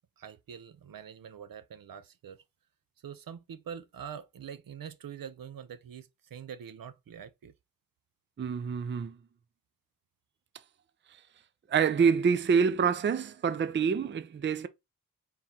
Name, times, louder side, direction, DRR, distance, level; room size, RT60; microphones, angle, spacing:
voice 1, 0.2-2.4 3.0-7.5, right 8 dB, 75° right, 0.7 m, -44 dB
voice 2, 8.4-9.1 11.7-14.7, right 6 dB, 35° right, 0.4 m, -26 dB
4.5 x 3.8 x 2.8 m
wide cardioid pair, 85°, 35 cm